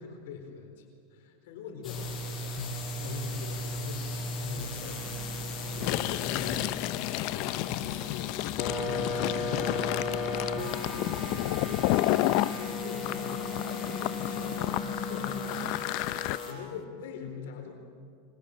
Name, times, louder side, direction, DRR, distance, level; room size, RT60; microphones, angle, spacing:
voice 1, 0.0-2.6 3.0-5.1 5.6-8.4 8.8-17.7, left 6 dB, 75° left, 3 dB, 4.4 m, -44 dB
sound 1, 1.8-16.5, left 2 dB, 30° left, 7.0 m, -36 dB
sound 2, 5.0-15.4, left 6 dB, 15° right, 3.1 m, -41 dB
Fill (with liquid), 5.7-12.5 13.0-16.4, left 17 dB, 55° left, 0.6 m, -31 dB
25.0 x 25.0 x 7.4 m, 2.4 s
supercardioid pair, 145°, 0 cm